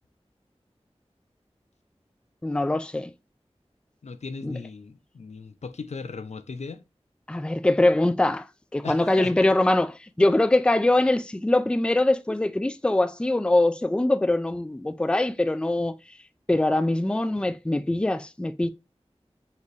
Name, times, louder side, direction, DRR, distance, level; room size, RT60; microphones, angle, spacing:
voice 1, 2.4-3.1 4.4-4.5 7.3-8.5 8.7-9.9 10.2-15.9 16.5-18.7, left 2 dB, 10° left, 0.3 m, -23 dB
voice 2, 4.0-6.8 8.8-9.3 9.7-9.8, left 4 dB, 80° left, 0.4 m, -37 dB
5.2 x 2.6 x 3.1 m
wide cardioid pair, 55°, 11 cm